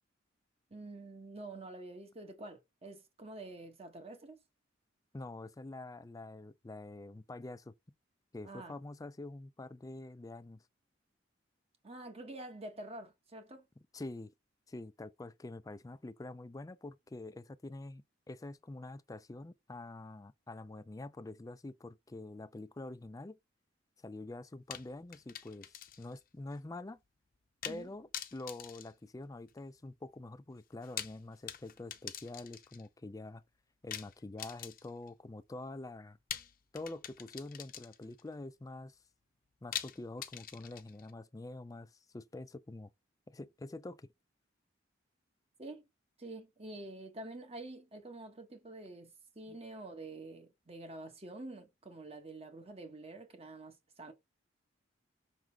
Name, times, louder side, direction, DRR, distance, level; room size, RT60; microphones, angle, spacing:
voice 1, 0.7-4.4 8.4-8.7 11.8-13.6 27.6-27.9 45.6-45.9 46.2-54.1, right 2 dB, 35° right, 1.3 m, -47 dB
voice 2, 5.1-7.7 8.3-10.6 13.9-14.3 14.7-23.4 24.0-27.0 27.6-33.4 33.8-36.2 36.7-39.0 39.6-42.9 43.3-44.1 49.5-49.6, left 2 dB, 20° left, 0.4 m, -46 dB
sound 1, 24.7-26.2 26.5-26.6 27.6-27.9 28.1-29.7 30.7-32.9 33.9-35.1 36.3-38.2 39.7-41.1, left 10 dB, 50° left, 0.8 m, -44 dB
6.1 x 3.8 x 4.5 m
head